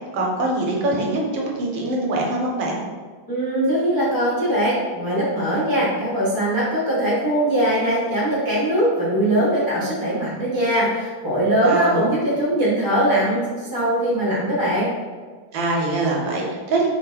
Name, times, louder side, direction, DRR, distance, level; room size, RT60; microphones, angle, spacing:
voice 1, 0.1-2.8 11.6-12.1 15.5-16.9, right 2 dB, 80° right, -1 dB, 1.5 m, -23 dB
voice 2, 3.3-13.4 13.7-14.9, right 1 dB, 35° left, -9 dB, 0.3 m, -21 dB
4.4 x 2.0 x 3.8 m, 1.5 s
omnidirectional pair, 2.1 m